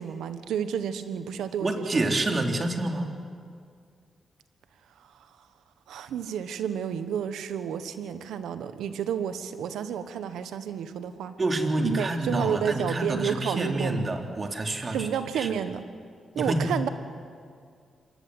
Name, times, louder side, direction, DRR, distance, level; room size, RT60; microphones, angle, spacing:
voice 1, 0.0-2.0 5.9-11.3 11.8-14.0 14.7-15.9 16.3-16.9, right 8 dB, 85° right, 10 dB, 1.3 m, -31 dB
voice 2, 1.6-3.1 11.4-15.1 15.3-15.5 16.3-16.7, right 2 dB, 45° right, 2 dB, 3.7 m, -28 dB
26.5 x 20.5 x 8.0 m, 2.2 s
supercardioid pair, 50°, 0 cm